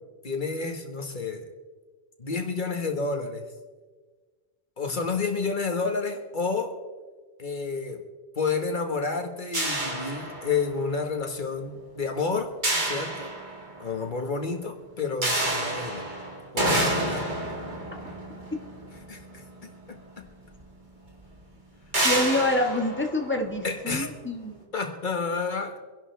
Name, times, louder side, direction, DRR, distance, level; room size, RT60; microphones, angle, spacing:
voice 1, 0.2-1.5 2.2-3.5 4.8-6.8 7.4-8.0 8.4-13.3 13.8-16.1 16.5-17.3 19.1-20.3 23.6-24.1 24.7-25.8, left 4 dB, 45° left, 4 dB, 1.7 m, -30 dB
sound 1, 9.5-10.9 12.6-13.9 15.2-19.7 20.6-20.7 21.1-21.2 21.9-23.9, right 1 dB, 45° right, 2.5 m, -29 dB
voice 2, 22.0-24.6, left 1 dB, 10° left, 2 dB, 1.6 m, -26 dB
25.0 x 11.0 x 3.4 m, 1.4 s
omnidirectional pair, 1.1 m